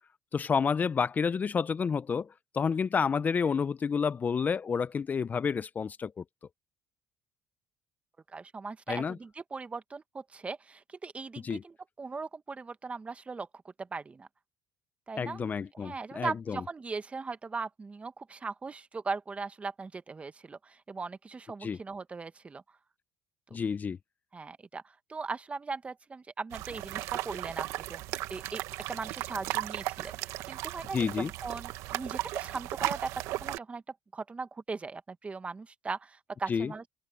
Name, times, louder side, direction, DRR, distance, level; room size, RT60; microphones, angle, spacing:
voice 1, 0.3-2.3 2.5-6.2 8.9-9.2 11.4-11.6 15.1-16.6 21.6-21.8 23.5-24.0 30.9-31.3 36.5-36.7, left 6 dB, 35° left, 0.6 m, -29 dB
voice 2, 8.3-13.5 13.8-14.3 15.1-22.6 24.3-28.0 28.3-28.6 28.9-33.8 34.1-36.8, right 4 dB, 25° right, 1.4 m, -39 dB
sound 1, 26.5-33.6, right 16 dB, 80° right, 1.1 m, -36 dB
supercardioid pair, 85°, 5 cm